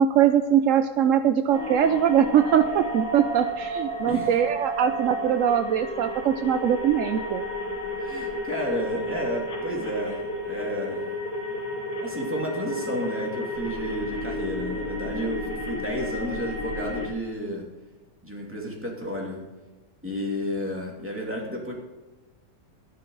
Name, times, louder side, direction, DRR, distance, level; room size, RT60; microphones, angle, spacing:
voice 1, 0.0-7.4 15.2-15.3, right 9 dB, 75° right, 9 dB, 0.7 m, -22 dB
sound 1, 1.5-17.1, left 1 dB, 50° left, 3.1 m, -32 dB
voice 2, 4.0-4.4 8.0-10.2 10.4-11.0 12.0-17.6 18.2-19.4 20.0-21.7, equal, 5° right, -2 dB, 2.6 m, -32 dB
13.0 x 11.0 x 3.9 m, 1.1 s
omnidirectional pair, 1.9 m